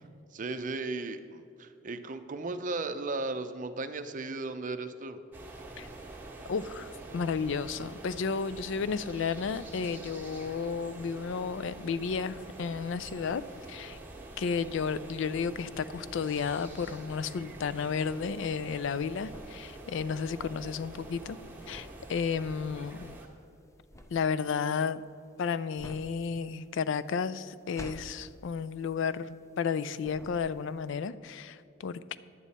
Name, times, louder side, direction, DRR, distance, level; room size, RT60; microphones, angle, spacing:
voice 1, 0.3-5.2, right 3 dB, 40° right, 9 dB, 0.6 m, -36 dB
sound 1, 5.3-23.3, right 2 dB, 10° right, 1.4 m, -46 dB
voice 2, 6.5-13.4 13.7-14.0 14.4-21.4 21.7-23.2 24.1-25.0 25.4-32.2, left 6 dB, 70° left, 15 dB, 0.4 m, -32 dB
sound 2, 18.8-29.7 30.0-30.8, left 1 dB, 15° left, 0.6 m, -50 dB
11.0 x 9.1 x 4.2 m, 2.5 s
head